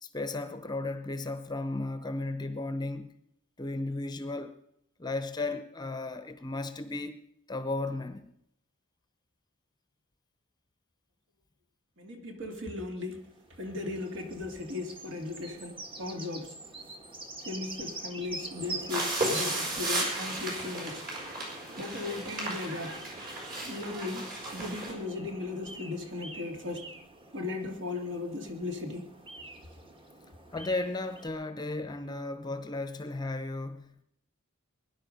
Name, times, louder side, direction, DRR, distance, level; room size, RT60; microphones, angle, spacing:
voice 1, 0.0-3.1 3.6-4.5 5.0-8.3 30.5-34.0, left 2 dB, 20° left, 0.8 m, -35 dB
voice 2, 12.0-13.3 13.6-16.5 17.4-21.0 21.8-23.0 23.6-26.8 27.3-29.0, left 3 dB, 55° right, 2.6 m, -37 dB
sound 1, 13.1-31.3, right 2 dB, 25° right, 1.5 m, -45 dB
sound 2, 18.9-24.9, right 2 dB, 40° right, 5.1 m, -34 dB
21.5 x 11.0 x 5.4 m
head